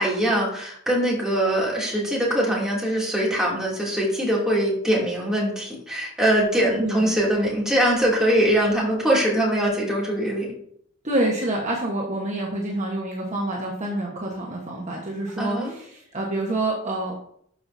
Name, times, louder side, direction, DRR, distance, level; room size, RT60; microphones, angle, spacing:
voice 1, 0.0-10.5 15.4-15.7, right 1 dB, 5° right, -5 dB, 2.8 m, -22 dB
voice 2, 11.0-17.1, right 1 dB, 35° right, -2 dB, 1.3 m, -27 dB
12.0 x 5.6 x 2.8 m, 0.65 s
head